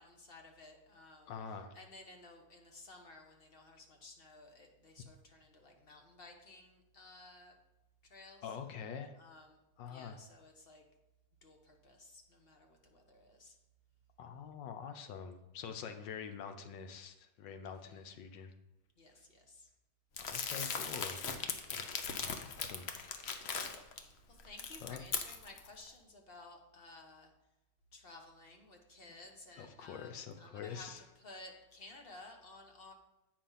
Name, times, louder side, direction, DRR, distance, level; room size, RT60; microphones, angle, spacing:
voice 1, 0.0-1.3 1.7-7.6 8.0-8.5 9.2-9.6 9.8-10.8 11.4-13.6 17.6-18.1 19.0-19.7 24.3-27.3 27.9-32.9, left 2 dB, 40° left, 3 dB, 1.1 m, -55 dB
voice 2, 1.3-1.7 8.4-9.1 9.8-10.2 14.2-18.5 20.2-21.2 22.4-22.9 23.5-23.7 24.8-25.0 29.6-31.0, left 7 dB, 85° left, 8 dB, 1.5 m, -45 dB
Crumpling crinkling, 20.2-24.0 24.4-25.7, left 6 dB, 60° left, 0.7 m, -39 dB
8.6 x 5.2 x 5.5 m, 0.97 s
omnidirectional pair, 1.9 m